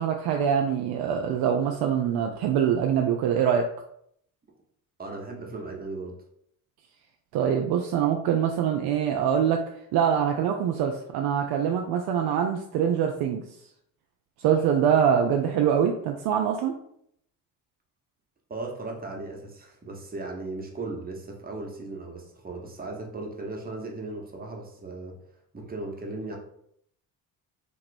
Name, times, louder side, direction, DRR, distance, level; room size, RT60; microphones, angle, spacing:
voice 1, 0.0-3.7 7.3-9.6 9.9-13.4 14.4-16.7, right 8 dB, 55° right, 3 dB, 0.5 m, -24 dB
voice 2, 5.0-6.2 18.5-25.2 25.5-26.4, right 2 dB, 20° right, 0 dB, 0.9 m, -37 dB
3.0 x 2.9 x 2.6 m, 0.70 s
hypercardioid pair, 55°, 46 cm